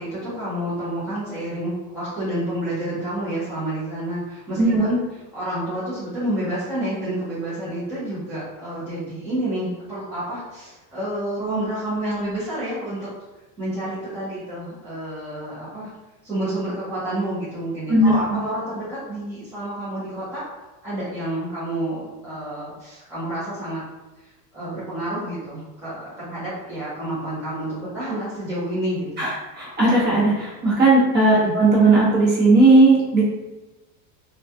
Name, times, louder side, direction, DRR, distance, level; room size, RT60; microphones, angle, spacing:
voice 1, 0.0-5.0 5.3-13.1 13.6-15.9 16.2-20.4 20.8-23.8 24.5-29.2 31.3-31.5, right 1 dB, 5° right, -14 dB, 0.3 m, -29 dB
voice 2, 29.2-33.2, right 2 dB, 20° right, -7 dB, 0.8 m, -16 dB
2.2 x 2.2 x 2.6 m, 1.1 s
cardioid pair, 155°, 47 cm